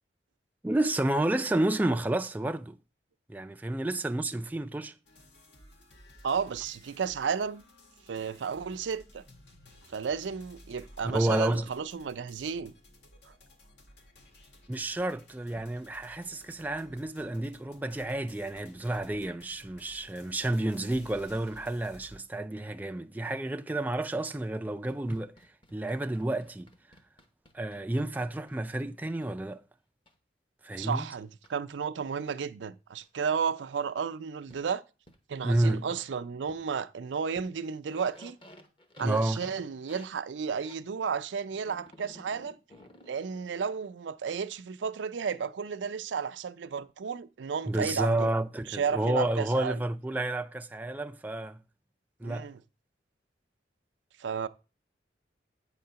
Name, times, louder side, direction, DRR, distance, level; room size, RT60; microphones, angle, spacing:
voice 1, 0.6-2.8 3.3-4.9 11.0-11.7 14.7-25.3 25.7-26.7 27.5-29.6 30.6-31.1 35.4-35.9 39.0-39.4 47.7-51.6 52.2-52.5, right 1 dB, 10° right, 0.3 m, -30 dB
sound 1, 5.0-22.2, left 1 dB, 70° left, 1.7 m, -56 dB
voice 2, 6.2-7.6 8.1-9.2 9.9-12.7 30.8-34.8 35.3-38.4 39.0-42.6 43.1-48.3 48.7-49.8 52.2-52.6 54.2-54.5, right 6 dB, 85° right, 0.5 m, -33 dB
sound 2, 24.8-29.2 30.1-30.2 31.4-31.5 32.2-32.3 33.0-33.1 34.5-34.6 35.1-35.2 35.9-36.1 36.5-36.6 37.3-37.5 37.7-40.8 41.5-43.6, left 1 dB, 30° left, 1.0 m, -53 dB
8.6 x 3.8 x 5.6 m
head